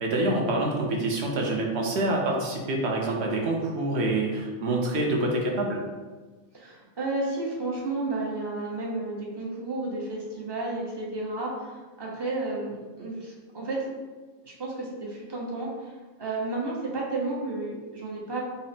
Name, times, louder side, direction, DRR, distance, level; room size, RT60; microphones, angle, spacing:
voice 1, 0.0-5.8, right 2 dB, 60° right, 0 dB, 0.9 m, -26 dB
voice 2, 6.5-13.9 14.4-18.4, right 2 dB, 30° right, -3 dB, 0.5 m, -32 dB
4.0 x 2.0 x 4.1 m, 1.3 s
omnidirectional pair, 1.4 m